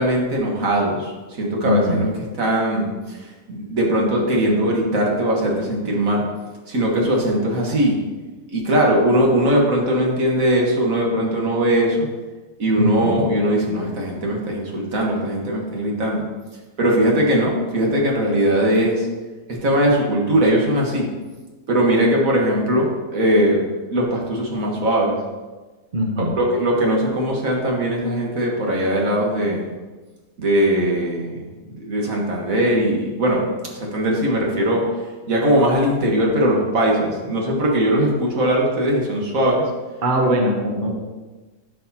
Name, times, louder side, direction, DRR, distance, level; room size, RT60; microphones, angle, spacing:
voice 1, 0.0-2.1 2.4-6.2 6.7-8.0 8.5-12.1 12.6-16.2 16.8-19.1 19.6-21.1 21.7-23.6 23.9-25.2 26.2-29.7 30.4-31.4 31.7-34.8 35.3-39.6, right 1 dB, 70° right, -1 dB, 1.9 m, -20 dB
voice 2, 1.6-2.0 12.8-13.3 25.9-26.3 40.0-40.9, equal, 40° right, 1 dB, 1.0 m, -21 dB
10.5 x 6.3 x 2.9 m, 1.3 s
omnidirectional pair, 1.5 m